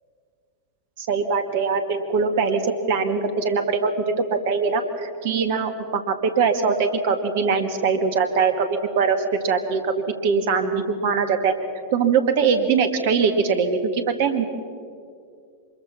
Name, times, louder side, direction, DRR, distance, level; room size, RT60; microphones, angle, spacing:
voice 1, 1.0-9.2 9.4-11.5 11.9-14.4, right 5 dB, 50° right, 7 dB, 2.1 m, -22 dB
26.0 x 22.0 x 5.9 m, 2.3 s
figure-of-eight pair, 90°, 0 cm